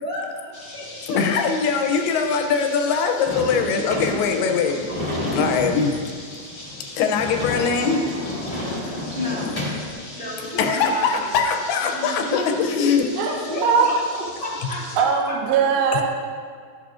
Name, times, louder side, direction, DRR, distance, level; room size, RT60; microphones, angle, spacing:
voice 1, 0.0-1.2 6.5-7.0 8.5-9.8 10.1-11.5 11.9-14.8 15.3-15.4, left 1 dB, 55° right, -8 dB, 0.5 m, -32 dB
sound 1, 0.5-15.0, left 2 dB, 45° left, 2.0 m, -40 dB
voice 2, 1.1-4.9 5.3-6.0 7.0-8.0 10.6-13.1, left 5 dB, 80° left, 5 dB, 2.6 m, -21 dB
Sliding door / Slam, 3.3-9.9, left 1 dB, 20° left, 1.4 m, -30 dB
voice 3, 13.2-13.9 14.1-14.2 14.9-16.0, right 6 dB, 75° right, 1 dB, 1.9 m, -20 dB
12.0 x 10.5 x 2.5 m, 2.1 s
omnidirectional pair, 4.7 m